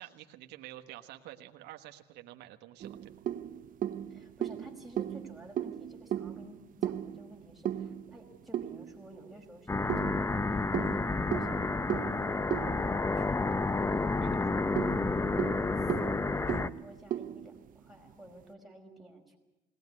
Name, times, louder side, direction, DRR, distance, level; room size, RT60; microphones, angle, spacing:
voice 1, 0.0-3.2 14.2-14.4, right 14 dB, 90° right, 5 dB, 1.4 m, -49 dB
sound 1, 2.8-9.2 9.9-13.8 14.1-14.2 14.6-18.1, right 10 dB, 55° right, 0.8 m, -37 dB
voice 2, 4.1-13.8 14.3-19.4, right 1 dB, ahead, -1 dB, 5.1 m, -53 dB
sound 2, 9.7-16.7, left 3 dB, 15° left, 0.8 m, -30 dB
21.5 x 18.5 x 9.7 m, 0.97 s
cardioid pair, 110°, 17 cm